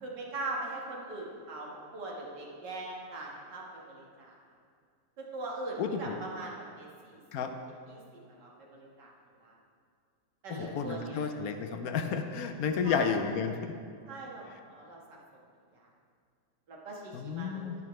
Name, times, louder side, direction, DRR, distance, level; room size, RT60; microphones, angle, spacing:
voice 1, 0.0-4.4 5.2-7.2 7.6-9.1 9.4-9.5 10.4-11.2 12.8-13.1 14.1-15.2 15.7-15.9 16.7-17.7, right 2 dB, 80° right, -2 dB, 2.2 m, -41 dB
voice 2, 5.8-6.2 7.3-7.5 10.5-13.7 17.1-17.8, left 6 dB, 70° left, 6 dB, 1.0 m, -32 dB
11.0 x 10.5 x 3.1 m, 2.2 s
omnidirectional pair, 1.8 m